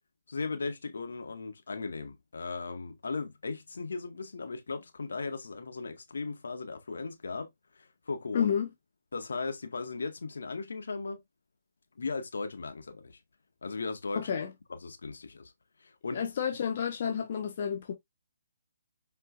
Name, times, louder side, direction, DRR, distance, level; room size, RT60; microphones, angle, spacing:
voice 1, 0.3-8.5 9.1-11.2 12.0-13.2 13.6-14.3 14.7-15.5 15.8-16.2, left 4 dB, 65° left, 1.8 m, -37 dB
voice 2, 8.3-8.7 14.1-14.5 16.1-17.9, left 7 dB, 45° left, 1.4 m, -30 dB
7.8 x 5.7 x 2.6 m
figure-of-eight pair, 140°, 0 cm